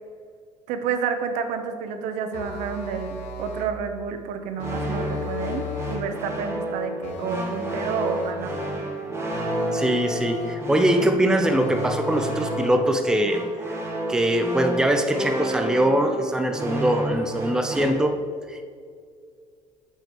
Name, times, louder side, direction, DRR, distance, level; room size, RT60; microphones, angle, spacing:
voice 1, 0.7-8.8, right 6 dB, 85° right, 7 dB, 0.8 m, -30 dB
sound 1, 2.3-3.8 4.6-6.1 7.0-8.5 9.3-10.7 11.4-12.9, left 3 dB, 70° left, 1.1 m, -35 dB
sound 2, 4.6-17.9, right 1 dB, 20° right, 1.3 m, -31 dB
voice 2, 9.7-13.4 14.1-18.1 18.5-18.6, right 1 dB, 5° right, 5 dB, 0.5 m, -22 dB
9.1 x 7.3 x 3.0 m, 2.2 s
cardioid pair, 140°, 12 cm